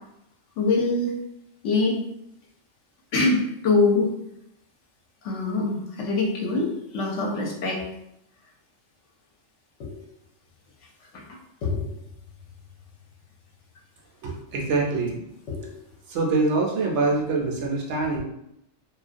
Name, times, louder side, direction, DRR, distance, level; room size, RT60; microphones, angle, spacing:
voice 1, 0.6-1.1 1.6-2.0 3.1-4.1 5.2-7.8 9.8-10.0 11.1-11.9 15.5-15.7, left 3 dB, 75° left, 0 dB, 0.9 m, -24 dB
voice 2, 14.2-15.2 16.1-18.2, right 3 dB, 70° right, -1 dB, 0.8 m, -24 dB
2.3 x 2.1 x 2.5 m, 0.80 s
omnidirectional pair, 1.3 m